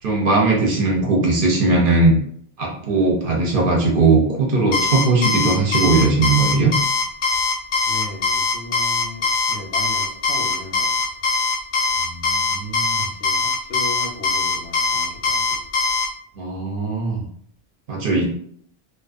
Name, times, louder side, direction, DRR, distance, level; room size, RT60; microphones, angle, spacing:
voice 1, 0.0-2.2 2.6-6.7 12.0-13.1 16.4-17.2 17.9-18.3, right 3 dB, 60° right, -1 dB, 0.7 m, -19 dB
Alarm, 4.7-16.1, left 4 dB, 55° left, 0.6 m, -21 dB
voice 2, 7.9-10.9 12.9-15.6, left 3 dB, 80° left, 2 dB, 0.9 m, -36 dB
2.4 x 2.3 x 2.4 m, 0.63 s
omnidirectional pair, 1.2 m